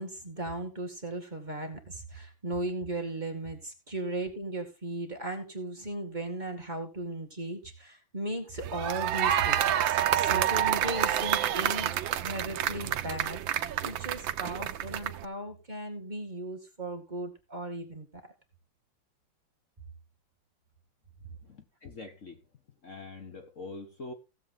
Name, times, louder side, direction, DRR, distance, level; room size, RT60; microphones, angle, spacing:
voice 1, 0.0-18.2, right 1 dB, 25° right, 2.1 m, -37 dB
sound 1, 8.6-15.3, right 11 dB, 80° right, 1.5 m, -28 dB
voice 2, 21.4-22.4 22.8-24.1, left 3 dB, 45° left, 1.5 m, -44 dB
16.5 x 7.5 x 3.7 m
omnidirectional pair, 2.1 m